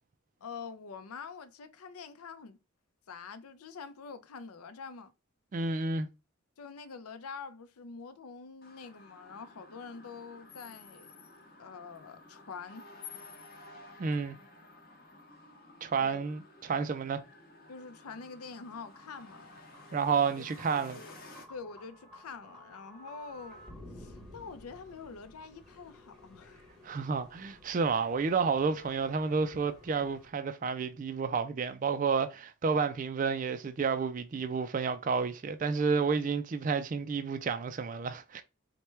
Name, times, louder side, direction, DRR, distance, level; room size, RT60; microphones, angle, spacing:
voice 1, 0.4-2.6 3.1-5.1 6.6-11.1 11.6-12.9 16.0-16.3 17.7-19.5 20.4-21.2 21.5-23.6 23.9-26.6, left 5 dB, 85° left, 0.5 m, -46 dB
voice 2, 5.5-6.1 14.0-14.4 15.8-17.2 19.9-21.0 26.8-38.4, right 5 dB, 35° right, 0.3 m, -30 dB
sound 1, 8.6-21.5, left 3 dB, 40° left, 0.8 m, -53 dB
sound 2, 18.7-30.3, equal, ahead, 0.9 m, -54 dB
4.3 x 2.2 x 3.2 m
head